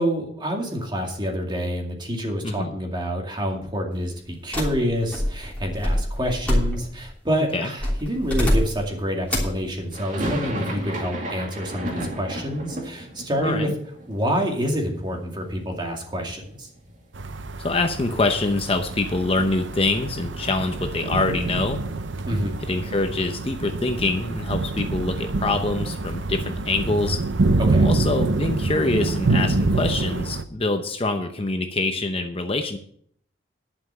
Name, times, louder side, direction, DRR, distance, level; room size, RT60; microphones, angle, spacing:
voice 1, 0.0-13.7 14.1-16.7 22.3-22.6 27.6-27.9, equal, 25° right, 1 dB, 2.3 m, -27 dB
voice 2, 2.4-2.8 7.5-7.7 13.4-13.7 17.6-21.8 22.6-27.2 27.8-32.8, left 2 dB, 30° left, 6 dB, 0.8 m, -25 dB
sound 1, 4.5-7.1 7.8-8.9 9.3-9.6, equal, 5° left, 3.1 m, -25 dB
sound 2, 9.9-17.0 17.2-17.3 17.6-19.8, right 1 dB, 45° right, 2.2 m, -34 dB
sound 3, 17.1-30.4, right 3 dB, 80° right, 0.7 m, -26 dB
11.0 x 5.7 x 7.5 m, 0.63 s
head